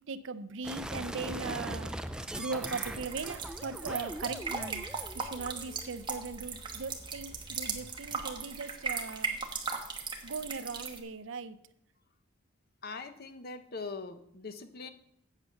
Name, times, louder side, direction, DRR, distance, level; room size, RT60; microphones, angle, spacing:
voice 1, 0.1-1.9 2.4-4.9 5.1-9.4 10.2-11.6, right 4 dB, 60° right, 13 dB, 0.6 m, -39 dB
sound 1, 0.6-8.2, right 1 dB, 5° right, 0.3 m, -42 dB
sound 2, 2.3-11.0, right 5 dB, 20° right, 1.0 m, -38 dB
voice 2, 12.8-14.9, left 4 dB, 45° left, 10 dB, 0.7 m, -42 dB
8.1 x 7.8 x 5.7 m, 0.71 s
head